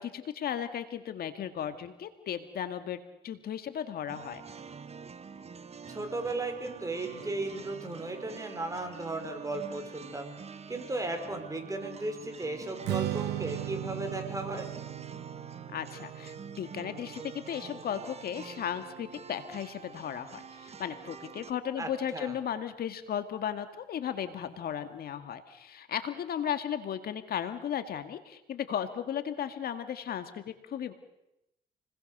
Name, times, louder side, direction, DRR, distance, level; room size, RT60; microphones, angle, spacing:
voice 1, 0.0-4.4 15.7-30.9, left 9 dB, 65° left, 9 dB, 2.0 m, -35 dB
sound 1, 4.1-21.5, right 6 dB, 40° right, 1.5 m, -47 dB
voice 2, 5.9-10.3 10.7-14.7 21.8-22.4, right 2 dB, 20° right, 6 dB, 5.3 m, -35 dB
Strum, 12.8-19.1, right 15 dB, 90° right, 0.9 m, -38 dB
29.0 x 20.5 x 6.7 m, 0.88 s
cardioid pair, 85°, 17 cm